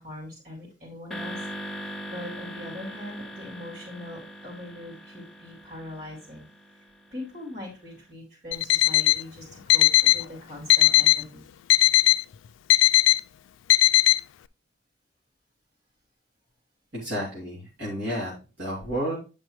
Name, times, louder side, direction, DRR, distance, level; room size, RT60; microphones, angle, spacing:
voice 1, 0.0-6.5 7.1-11.4, left 1 dB, 50° right, -3 dB, 3.9 m, -41 dB
sound 1, 1.1-7.5, equal, ahead, 0.6 m, -40 dB
Alarm, 8.5-9.2 9.7-10.2 10.7-11.2 11.7-12.2 12.7-13.2 13.7-14.2, left 17 dB, 90° left, 0.3 m, -18 dB
voice 2, 16.9-19.2, equal, 70° right, -7 dB, 2.9 m, -31 dB
9.0 x 5.3 x 3.2 m, 0.31 s
head